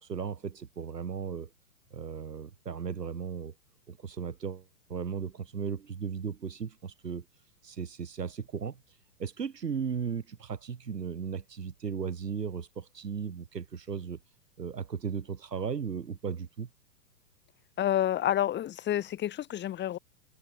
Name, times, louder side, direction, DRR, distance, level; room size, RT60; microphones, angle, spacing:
voice 1, 0.0-1.5 1.9-3.5 3.9-7.3 7.6-8.8 9.2-14.2 14.6-16.7, right 6 dB, 85° right, 3.7 m, -36 dB
voice 2, 17.8-20.0, left 12 dB, 20° left, 3.0 m, -29 dB
hypercardioid pair, 125°, 48 cm